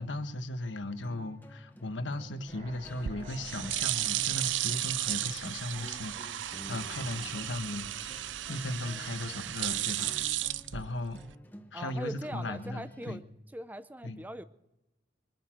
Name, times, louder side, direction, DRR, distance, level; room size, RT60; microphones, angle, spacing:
voice 1, 0.0-11.2 11.7-13.2 14.0-14.2, left 1 dB, 80° left, 8 dB, 1.3 m, -37 dB
sound 1, 0.9-13.2, equal, 10° left, 0.9 m, -51 dB
sound 2, 2.2-7.3 7.6-7.7, equal, 35° right, 2.6 m, -54 dB
sound 3, 2.9-11.3, right 13 dB, 85° right, 0.5 m, -34 dB
voice 2, 11.7-13.2 13.5-14.4, right 1 dB, 10° right, 13 dB, 0.5 m, -41 dB
24.5 x 9.2 x 6.1 m, 0.96 s
head